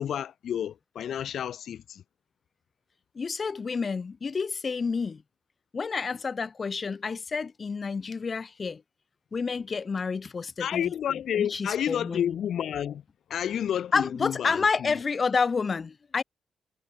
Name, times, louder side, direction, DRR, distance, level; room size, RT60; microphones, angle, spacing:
voice 1, 0.0-2.0 10.6-13.0 13.3-15.0, left 9 dB, 60° left, 2.3 m, -30 dB
voice 2, 3.1-5.2 5.7-8.8 9.3-10.9 11.4-12.3 13.9-16.2, left 5 dB, 30° left, 1.1 m, -29 dB
wide cardioid pair, 160°, 0 cm